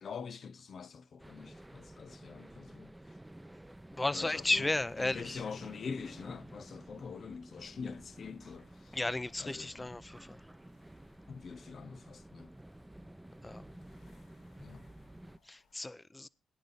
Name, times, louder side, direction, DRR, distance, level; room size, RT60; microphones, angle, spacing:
voice 1, 0.0-2.9 4.1-4.7 5.0-9.0 9.4-9.9 11.3-12.5 14.6-14.8, left 5 dB, 60° left, 0.7 m, -44 dB
sound 1, 1.2-15.4, right 1 dB, 10° right, 0.8 m, -52 dB
voice 2, 3.9-5.4 8.9-10.4 13.4-13.7 15.4-16.3, left 2 dB, 20° left, 0.7 m, -34 dB
sound 2, 7.7-15.8, left 4 dB, 80° left, 5.8 m, -72 dB
19.0 x 10.5 x 4.1 m
supercardioid pair, 45°, 0 cm